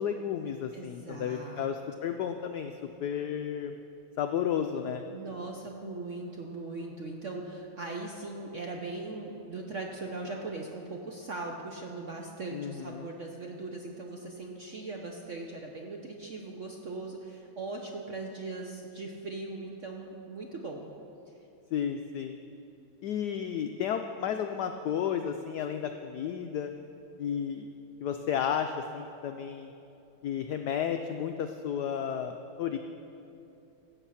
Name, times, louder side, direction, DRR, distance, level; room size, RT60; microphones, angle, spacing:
voice 1, 0.0-2.7 3.0-3.8 4.2-5.0 12.5-13.1 21.7-22.4 23.0-26.7 27.2-27.7 28.0-29.7 30.2-32.8, left 8 dB, 80° left, 6 dB, 0.9 m, -32 dB
voice 2, 0.7-1.7 2.0-2.1 5.1-20.9, right 3 dB, 60° right, 1 dB, 0.8 m, -39 dB
16.0 x 7.2 x 5.7 m, 2.8 s
omnidirectional pair, 2.2 m